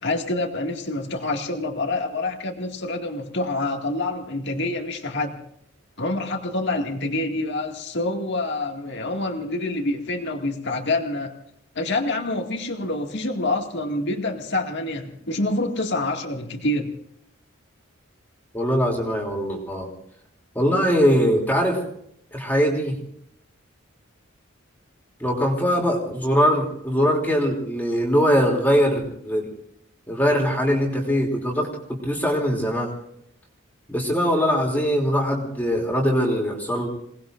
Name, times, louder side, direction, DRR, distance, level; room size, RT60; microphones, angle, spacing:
voice 1, 0.0-5.4 6.0-11.4 11.8-16.9, left 2 dB, 55° left, 3 dB, 2.2 m, -27 dB
voice 2, 18.5-19.9 20.5-21.8 22.3-23.0 25.2-29.5 30.1-32.9 33.9-36.9, equal, 10° left, -1 dB, 3.0 m, -22 dB
28.0 x 19.5 x 2.6 m, 0.71 s
head